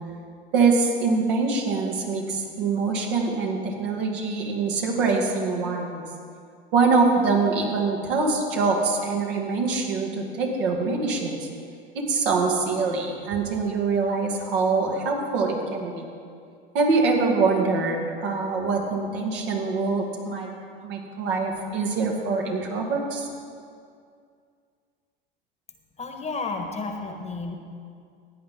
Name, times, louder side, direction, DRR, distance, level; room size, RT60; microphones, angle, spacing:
voice 1, 0.5-6.0 6.7-11.5 11.9-16.1 16.7-20.5 20.8-23.3, right 4 dB, 65° right, 0 dB, 2.1 m, -24 dB
voice 2, 26.0-27.6, left 3 dB, 20° left, 4 dB, 1.3 m, -32 dB
16.0 x 9.6 x 3.7 m, 2.3 s
hypercardioid pair, 80°, 29 cm